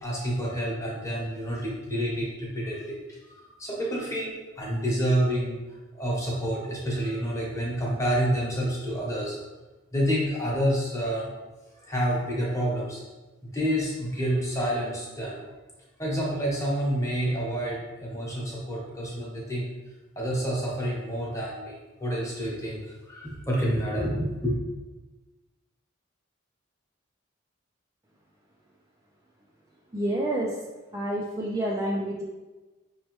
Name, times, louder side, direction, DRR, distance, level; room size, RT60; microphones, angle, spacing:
voice 1, 0.0-3.0 3.6-5.6 5.9-9.4 9.9-11.3 11.8-13.0 13.5-15.4 16.0-19.7 20.2-24.5, equal, 15° left, -5 dB, 1.1 m, -28 dB
voice 2, 29.9-30.6 30.9-32.2, right 1 dB, 15° right, -4 dB, 0.4 m, -28 dB
5.3 x 3.1 x 3.1 m, 1.2 s
head